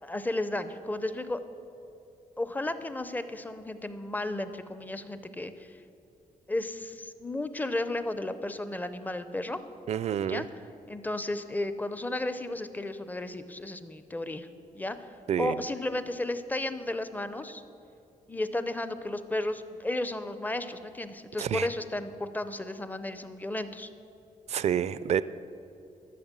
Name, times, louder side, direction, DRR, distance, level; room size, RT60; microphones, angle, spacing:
voice 1, 0.0-1.4 2.4-5.8 6.5-9.6 10.2-10.5 10.9-14.5 14.7-17.6 18.3-23.9, left 1 dB, 10° left, 11 dB, 0.5 m, -33 dB
voice 2, 9.9-10.4 15.3-15.6 21.4-21.7 24.5-25.2, right 9 dB, 55° right, 16 dB, 0.4 m, -28 dB
12.5 x 6.7 x 7.4 m, 2.7 s
wide cardioid pair, 145°, 14 cm